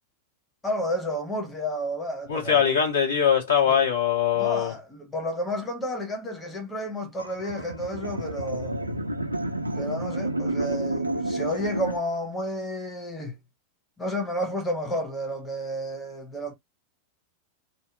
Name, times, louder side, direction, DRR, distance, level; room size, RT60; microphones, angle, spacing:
voice 1, 0.6-2.6 3.7-3.8 4.3-8.8 9.7-13.4 14.0-16.5, equal, 15° left, 0.9 m, -31 dB
voice 2, 2.3-4.7, left 8 dB, 65° left, 1.2 m, -22 dB
sound 1, 7.2-12.0, right 1 dB, 85° right, 0.4 m, -30 dB
2.8 x 2.0 x 2.5 m
figure-of-eight pair, 90°, 0 cm